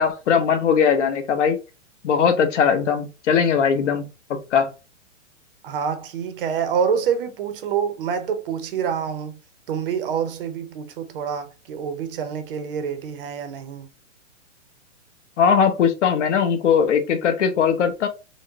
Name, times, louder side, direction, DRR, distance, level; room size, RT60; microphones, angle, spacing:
voice 1, 0.0-1.6 2.0-4.1 4.5-4.7 15.4-18.1, left 7 dB, 65° left, 0.9 m, -19 dB
voice 2, 5.6-9.4 9.7-13.9, right 7 dB, 45° right, 0.6 m, -26 dB
4.5 x 2.1 x 2.7 m
hypercardioid pair, 150°, 39 cm